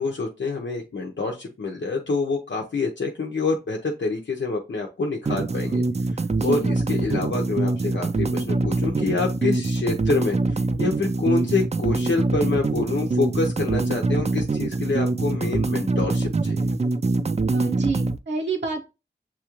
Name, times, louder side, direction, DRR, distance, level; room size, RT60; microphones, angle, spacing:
voice 1, 0.0-5.8 6.4-16.7, left 3 dB, 90° left, 1 dB, 0.7 m, -27 dB
sound 1, 5.3-18.2, right 3 dB, 35° right, 0.4 m, -24 dB
voice 2, 6.3-6.7 17.5-18.8, right 4 dB, 70° right, -2 dB, 0.9 m, -29 dB
7.3 x 2.4 x 2.9 m, 0.28 s
wide cardioid pair, 50°, 19 cm